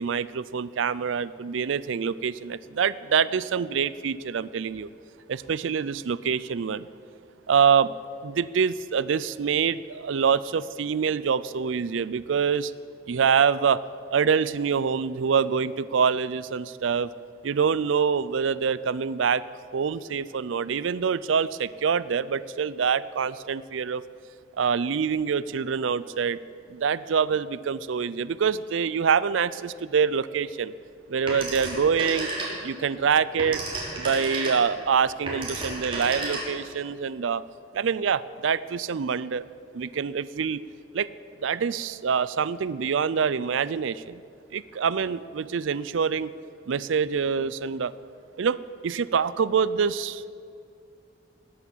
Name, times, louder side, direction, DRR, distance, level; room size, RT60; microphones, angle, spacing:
voice 1, 0.0-4.9 5.3-6.9 7.5-7.9 8.2-12.7 13.1-13.8 14.1-17.1 17.4-19.4 19.7-24.0 24.6-26.4 26.7-30.7 31.1-32.3 32.6-33.6 33.9-37.4 37.7-39.4 39.7-40.6 40.9-41.1 41.4-44.2 44.5-46.3 46.7-47.9 48.4-50.3, right 6 dB, 85° right, 17 dB, 0.4 m, -25 dB
Telephone, 31.3-32.8 33.2-36.8, right 2 dB, 25° right, 3.4 m, -32 dB
19.5 x 8.5 x 7.4 m, 2.4 s
head